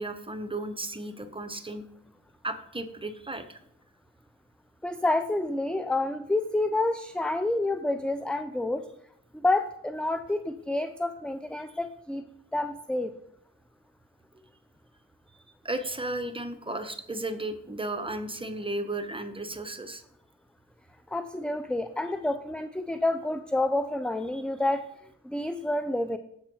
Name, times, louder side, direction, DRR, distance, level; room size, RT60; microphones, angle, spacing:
voice 1, 0.0-1.8 2.4-3.6 15.6-20.0 24.3-24.4, right 2 dB, 15° right, 8 dB, 1.0 m, -34 dB
voice 2, 4.8-8.8 9.3-12.2 12.5-13.1 21.1-24.8 25.2-26.2, left 2 dB, 5° left, 9 dB, 0.5 m, -28 dB
7.1 x 4.2 x 6.1 m, 0.75 s
supercardioid pair, 45°, 35 cm